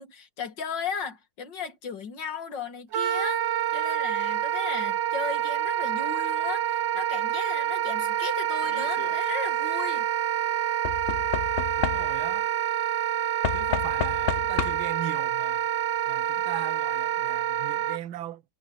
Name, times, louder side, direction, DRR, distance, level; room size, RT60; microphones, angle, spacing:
voice 1, 0.0-3.4 3.7-10.1, left 6 dB, 65° left, 2.7 m, -36 dB
Wind instrument woodwind instrument, 2.9-18.0, right 10 dB, 75° right, 0.6 m, -27 dB
Knock / Wood, 8.6-9.1 10.8-12.4 13.4-15.0 16.1-16.2 16.4-16.5, left 8 dB, 80° left, 0.5 m, -31 dB
voice 2, 11.8-12.5 13.5-15.7 16.1-18.4, right 12 dB, 90° right, 1.7 m, -39 dB
omnidirectional pair, 2.1 m